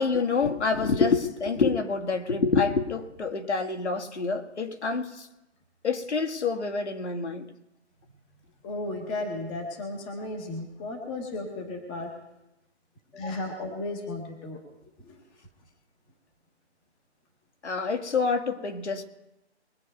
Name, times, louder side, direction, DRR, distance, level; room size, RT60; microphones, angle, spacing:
voice 1, 0.0-5.3 5.8-7.5 13.1-13.4 17.6-19.0, left 4 dB, 75° left, 4 dB, 1.9 m, -27 dB
voice 2, 8.6-12.1 13.2-14.6 15.0-15.1, left 2 dB, 10° left, 2 dB, 0.8 m, -34 dB
22.0 x 8.1 x 5.4 m, 0.91 s
hypercardioid pair, 160°, 34 cm